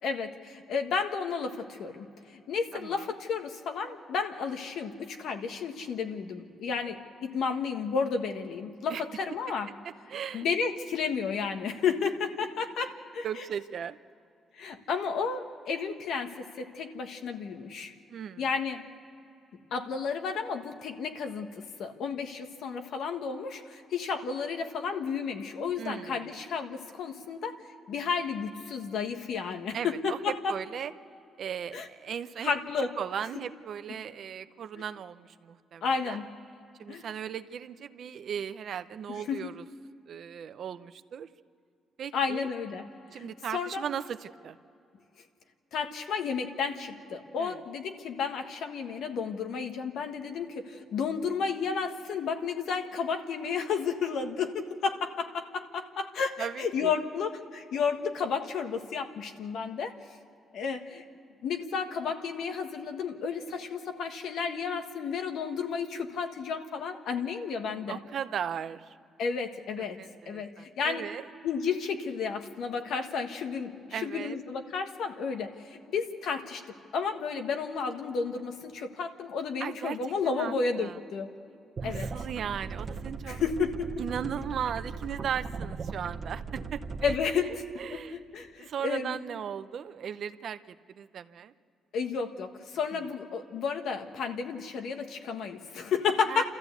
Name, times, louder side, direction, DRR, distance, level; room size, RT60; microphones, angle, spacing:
voice 1, 0.0-9.7 10.3-13.3 14.5-17.9 18.4-18.8 19.7-27.6 27.9-30.6 31.7-31.9 32.4-32.9 34.8-34.9 35.8-36.2 36.9-37.0 39.1-39.5 42.1-42.8 43.1-43.8 45.7-60.0 60.5-61.1 61.4-68.0 69.2-70.0 70.3-71.0 71.4-76.6 76.9-81.3 81.8-82.1 83.3-83.9 87.0-87.6 87.9-89.2 91.9-96.4, left 5 dB, 75° left, 5 dB, 1.6 m, -32 dB
voice 2, 2.7-3.1 8.9-9.0 10.1-10.4 13.2-14.0 18.1-18.5 25.8-26.3 29.7-30.9 31.4-32.5 33.0-36.2 36.8-39.6 40.1-41.3 42.0-42.5 43.1-44.6 47.4-47.6 56.4-56.9 67.9-69.0 70.0-71.3 73.9-74.4 79.6-80.0 80.2-81.0 81.8-83.4 84.0-88.2 88.6-91.5 92.9-93.0 96.3-96.4, right 8 dB, 60° right, 12 dB, 0.7 m, -37 dB
sound 1, 81.8-87.2, right 4 dB, 40° right, 1.1 m, -38 dB
29.0 x 14.0 x 8.3 m, 2.6 s
cardioid pair, 90°, 0 cm